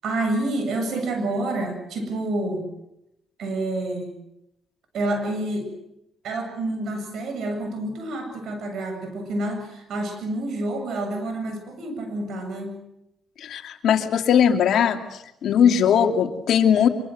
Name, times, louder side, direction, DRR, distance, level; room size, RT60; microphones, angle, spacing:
voice 1, 0.0-2.7 3.4-4.1 4.9-5.7 6.2-12.8, right 2 dB, 70° right, 6 dB, 7.7 m, -28 dB
voice 2, 13.4-15.0 15.4-16.9, left 8 dB, 70° left, 6 dB, 2.6 m, -19 dB
24.5 x 24.0 x 7.9 m, 0.85 s
cardioid pair, 90°, 0 cm